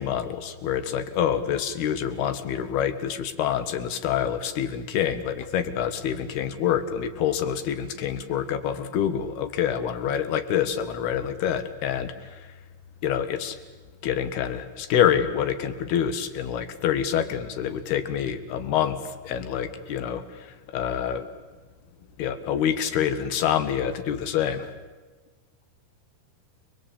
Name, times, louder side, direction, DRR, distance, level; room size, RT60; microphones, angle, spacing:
voice 1, 0.0-12.5 13.0-13.6 14.0-21.3 22.2-24.6, left 9 dB, 75° left, 10 dB, 3.5 m, -26 dB
29.5 x 22.0 x 8.5 m, 1.3 s
omnidirectional pair, 4.6 m